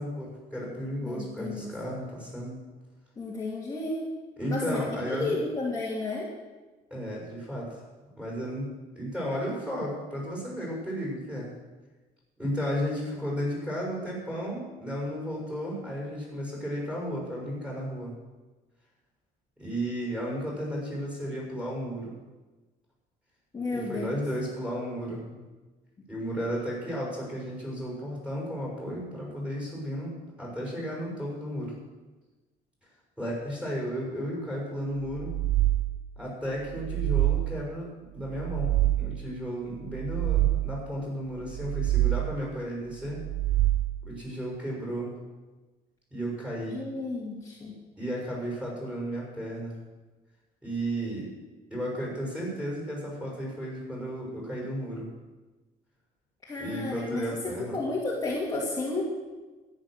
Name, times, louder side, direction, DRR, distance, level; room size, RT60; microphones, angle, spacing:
voice 1, 0.0-2.6 4.4-5.4 6.9-7.8 8.2-11.5 12.4-18.1 19.6-22.1 23.7-25.4 26.1-30.1 30.4-31.7 33.2-35.3 36.2-43.2 44.0-45.2 46.1-46.8 48.0-49.8 50.6-51.3 51.7-55.1 56.6-57.8, equal, 5° right, -4 dB, 6.3 m, -34 dB
voice 2, 1.0-1.7 3.2-4.1 4.5-4.8 5.1-6.3 23.5-24.2 46.7-47.7 56.5-57.4 57.7-59.1, left 2 dB, 20° left, -4 dB, 2.2 m, -32 dB
sound 1, 35.1-36.2 36.7-37.8 38.3-39.4 39.9-41.0 41.5-42.5 43.1-44.2, right 15 dB, 60° right, 0.5 m, -27 dB
13.5 x 11.0 x 6.4 m, 1.2 s
cardioid pair, 155°, 17 cm